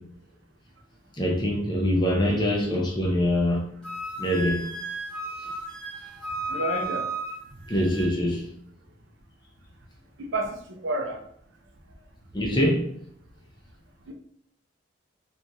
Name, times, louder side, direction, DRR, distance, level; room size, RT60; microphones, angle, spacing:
voice 1, 1.2-3.6 4.2-4.6 7.7-8.4 12.3-12.8, equal, 20° left, -1 dB, 0.5 m, -24 dB
Wind instrument woodwind instrument, 3.8-8.1, right 1 dB, 5° left, 0.9 m, -34 dB
voice 2, 6.5-7.1 10.2-11.2 14.1-14.2, right 2 dB, 65° right, 3 dB, 0.5 m, -30 dB
2.9 x 2.4 x 2.5 m, 0.65 s
head